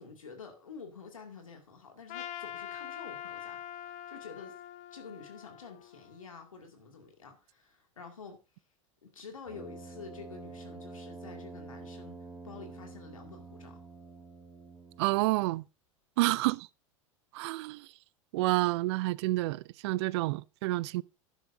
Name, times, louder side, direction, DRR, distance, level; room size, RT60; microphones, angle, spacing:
voice 1, 0.0-4.5 4.9-8.4 9.0-12.2 12.4-13.8 16.2-16.5, left 5 dB, 85° left, 2.5 m, -49 dB
Trumpet, 2.1-6.4, left 11 dB, 45° left, 0.9 m, -44 dB
Brass instrument, 9.4-15.3, right 3 dB, 5° right, 3.1 m, -47 dB
voice 2, 15.0-15.6 16.2-16.6 17.3-17.9 18.3-21.0, right 20 dB, 55° right, 0.4 m, -29 dB
12.0 x 10.0 x 2.7 m
figure-of-eight pair, 85°, 17 cm